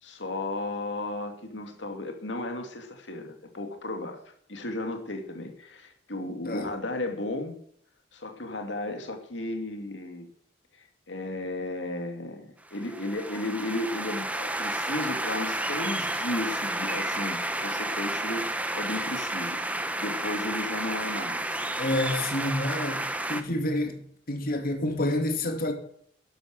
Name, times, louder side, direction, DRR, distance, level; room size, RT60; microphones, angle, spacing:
voice 1, 0.0-7.5 8.1-10.3 11.1-21.7, left 2 dB, 75° left, 2.5 m, -34 dB
sound 1, 12.7-23.4, right 1 dB, 10° right, 1.3 m, -31 dB
voice 2, 21.8-24.0 24.3-25.7, left 1 dB, 55° left, 2.5 m, -28 dB
12.5 x 11.5 x 7.7 m
head